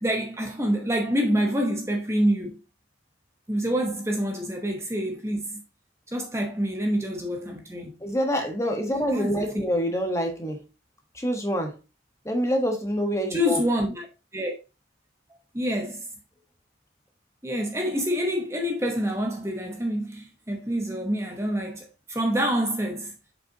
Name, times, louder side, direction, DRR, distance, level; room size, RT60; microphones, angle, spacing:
voice 1, 0.0-2.6 3.5-5.6 6.1-7.9 9.1-9.7 13.3-14.1 14.3-14.5 15.5-16.1 17.4-23.1, equal, 15° right, 1.0 m, -27 dB
voice 2, 8.0-10.6 11.1-11.7 12.2-13.6, equal, 15° left, 1.3 m, -26 dB
7.3 x 5.6 x 2.9 m
head